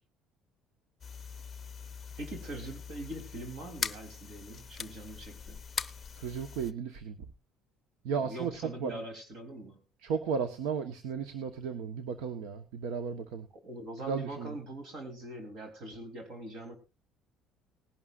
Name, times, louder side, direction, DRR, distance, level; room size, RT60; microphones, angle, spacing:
sound 1, 1.0-6.7, left 6 dB, 25° left, 0.7 m, -41 dB
voice 1, 2.2-5.6 8.1-9.8 13.5-16.8, right 1 dB, 55° right, 5 dB, 3.1 m, -42 dB
voice 2, 6.2-7.2 8.0-8.5 8.8-9.0 10.0-13.5 14.1-14.5, right 6 dB, 85° right, 9 dB, 1.2 m, -34 dB
19.0 x 11.5 x 2.5 m, 0.28 s
cardioid pair, 140°, 0 cm